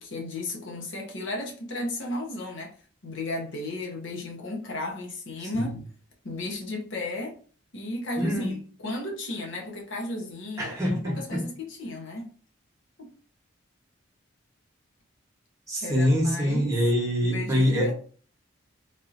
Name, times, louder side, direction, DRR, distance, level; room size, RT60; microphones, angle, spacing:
voice 1, 0.0-2.7 3.0-5.8 6.2-7.4 7.7-12.3 13.0-13.1 15.8-16.8 17.2-17.9, left 1 dB, 65° left, 0.9 m, -34 dB
voice 2, 8.2-8.5 10.6-11.2 15.7-17.9, equal, 15° right, 1.1 m, -24 dB
3.5 x 2.7 x 2.6 m
head